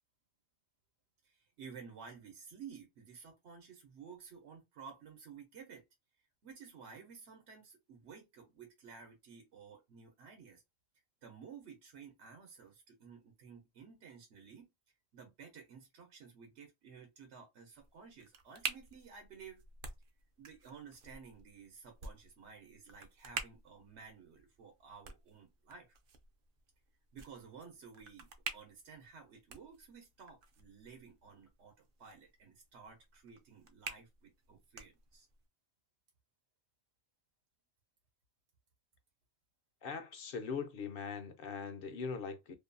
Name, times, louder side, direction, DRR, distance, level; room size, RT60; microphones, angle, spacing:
voice 1, 1.2-5.8 6.4-10.6 11.2-14.7 15.1-19.6 20.4-25.9 27.1-35.3, right 6 dB, 85° right, 1.0 m, -54 dB
sound 1, 17.7-35.5, right 5 dB, 60° right, 0.7 m, -49 dB
voice 2, 39.8-42.6, left 5 dB, 65° left, 0.7 m, -41 dB
2.6 x 2.2 x 2.5 m
omnidirectional pair, 1.1 m